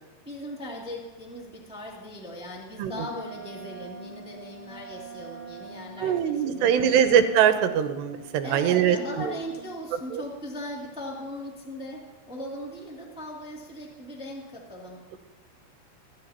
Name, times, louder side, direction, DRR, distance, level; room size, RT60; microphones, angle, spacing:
voice 1, 0.2-7.0 8.4-15.2, left 1 dB, 5° right, -2 dB, 0.8 m, -39 dB
Wind instrument woodwind instrument, 2.9-9.7, right 3 dB, 85° left, 4.9 m, -44 dB
voice 2, 6.0-9.0 10.1-10.2, right 9 dB, 85° right, 9 dB, 2.9 m, -22 dB
27.0 x 12.0 x 2.9 m, 1.1 s
omnidirectional pair, 5.0 m